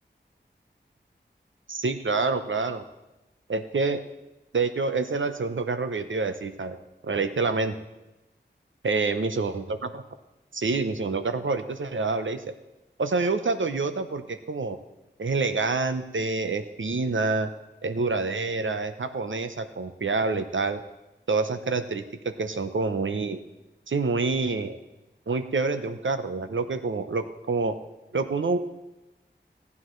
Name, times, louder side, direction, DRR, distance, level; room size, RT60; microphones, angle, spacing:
voice 1, 1.7-2.8 3.5-4.0 4.5-6.8 7.0-7.7 8.8-10.0 10.5-12.5 13.0-14.8 15.2-17.5 17.8-20.8 21.3-23.4 23.9-24.8 25.3-27.8 28.1-28.6, right 3 dB, 85° right, 9 dB, 0.8 m, -27 dB
17.5 x 9.5 x 3.2 m, 1.0 s
wide cardioid pair, 55°, 19 cm